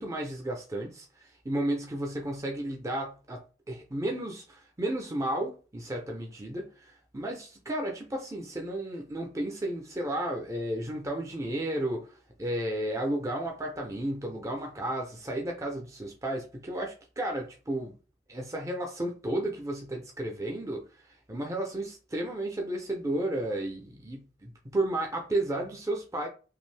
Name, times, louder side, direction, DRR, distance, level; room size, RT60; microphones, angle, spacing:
voice 1, 0.0-12.1 12.4-17.9 18.3-20.8 21.3-26.3, right 1 dB, 20° right, 0.6 m, -33 dB
2.6 x 2.5 x 3.2 m
head